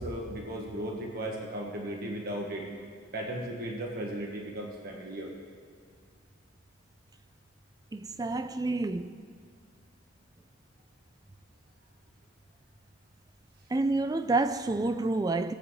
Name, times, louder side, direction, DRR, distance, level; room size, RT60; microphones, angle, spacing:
voice 1, 0.0-2.6 3.1-5.3, right 1 dB, 50° right, 1.4 m, -36 dB
voice 2, 7.9-9.1 13.7-15.5, right 2 dB, 20° right, 0.4 m, -28 dB
17.5 x 8.8 x 3.2 m
head